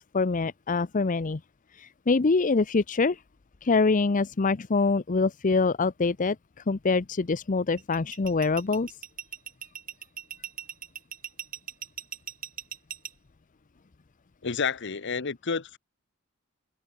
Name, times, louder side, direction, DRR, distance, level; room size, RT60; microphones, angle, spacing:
voice 1, 0.0-1.4 1.7-3.2 3.6-8.9, left 4 dB, 40° left, 0.6 m, -25 dB
sound 1, 7.8-13.1, right 9 dB, 40° right, 1.4 m, -38 dB
voice 2, 14.4-15.8, left 5 dB, 55° left, 1.0 m, -30 dB
head